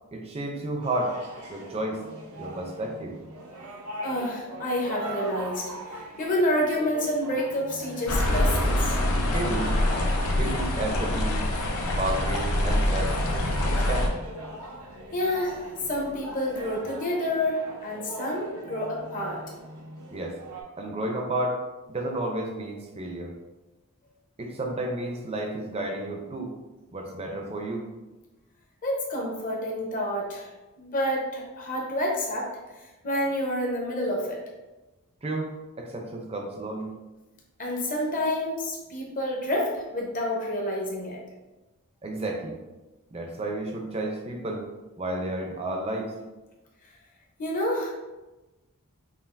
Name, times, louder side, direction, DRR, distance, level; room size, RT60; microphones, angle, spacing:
voice 1, 0.1-1.2 1.5-2.0 2.4-3.1 9.2-9.8 10.3-11.5 11.9-14.1 20.1-20.4 20.8-21.6 21.9-23.4 24.4-26.5 26.9-27.9 35.2-35.5 35.8-36.9 42.0-42.6 43.1-44.7 45.0-46.1, right 1 dB, 25° right, 2 dB, 0.5 m, -32 dB
sound 1, 0.8-20.6, right 1 dB, 90° right, 0.7 m, -41 dB
voice 2, 4.0-5.7 6.2-9.0 15.1-19.4 28.8-30.5 30.8-32.5 33.0-34.4 37.6-41.2 47.4-47.9, left 1 dB, 35° left, -1 dB, 0.8 m, -28 dB
sound 2, 8.1-14.1, left 1 dB, 70° left, 0.6 m, -25 dB
5.5 x 2.5 x 2.5 m, 1.1 s
head